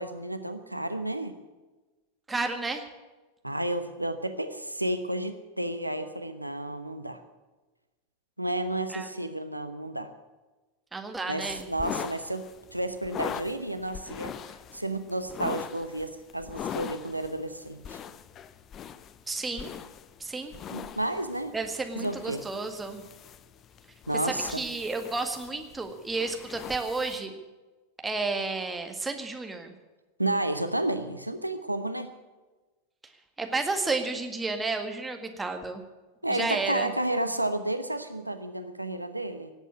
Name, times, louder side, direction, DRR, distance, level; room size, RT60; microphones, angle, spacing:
voice 1, 0.0-1.3 3.4-7.2 8.4-10.1 11.3-12.4 12.7-14.3 14.7-18.0 20.7-21.5 21.9-22.4 24.1-24.6 30.2-32.1 36.2-39.5, right 1 dB, 85° right, 9 dB, 0.9 m, -31 dB
voice 2, 2.3-2.8 8.9-9.1 10.9-11.7 19.3-19.7 20.2-20.5 21.5-23.0 24.2-27.4 28.0-29.7 33.4-35.8 36.3-36.9, right 3 dB, 10° right, 5 dB, 1.8 m, -32 dB
sound 1, 11.4-27.2, left 8 dB, 30° left, 0.7 m, -41 dB
18.0 x 8.2 x 8.4 m, 1.2 s
figure-of-eight pair, 90°, 0 cm